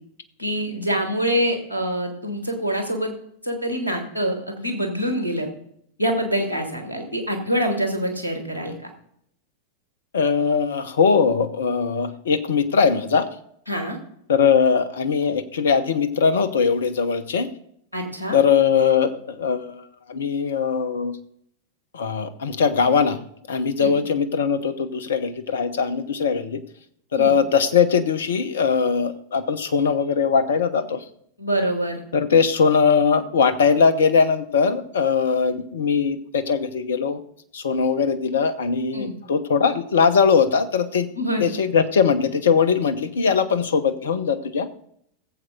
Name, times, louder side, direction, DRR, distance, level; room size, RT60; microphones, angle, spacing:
voice 1, 0.4-3.1 3.4-5.5 6.0-8.7 13.7-14.0 17.9-18.4 23.8-23.9 27.2-27.3 31.4-32.0 38.9-39.1 41.2-41.5, equal, 85° left, 4 dB, 2.4 m, -25 dB
voice 2, 10.1-13.3 14.3-17.5 18.3-21.2 21.9-23.2 23.5-26.6 27.1-31.0 32.1-37.2 37.5-41.1 41.4-44.7, left 6 dB, 65° left, 12 dB, 1.0 m, -20 dB
16.5 x 7.8 x 3.9 m, 0.69 s
figure-of-eight pair, 90°, 0 cm